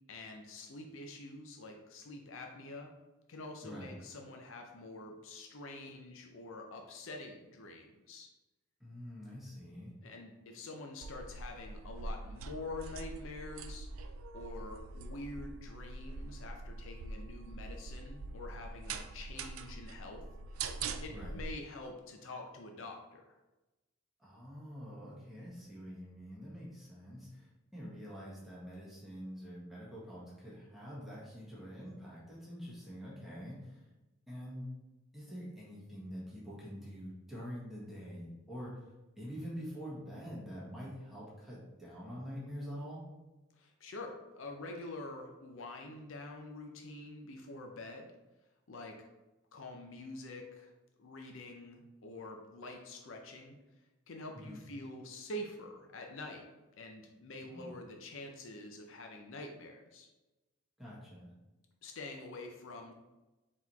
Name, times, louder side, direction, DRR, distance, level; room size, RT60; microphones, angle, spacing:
voice 1, 0.1-2.9 3.3-8.3 10.0-20.2 20.5-20.6 21.0-23.3 43.6-48.1 48.7-49.1 49.5-50.7 51.0-53.6 54.1-56.5 56.8-60.1 61.8-62.9, left 2 dB, 65° left, 3 dB, 0.6 m, -46 dB
voice 2, 8.8-9.9 21.1-21.3 24.2-33.9 34.3-34.7 35.1-38.9 39.2-43.0 54.3-54.6 57.4-57.8 60.8-61.3, equal, ahead, -8 dB, 1.4 m, -46 dB
sound 1, 11.0-21.5, right 3 dB, 75° right, 0.4 m, -43 dB
4.1 x 3.0 x 4.1 m, 1.1 s
head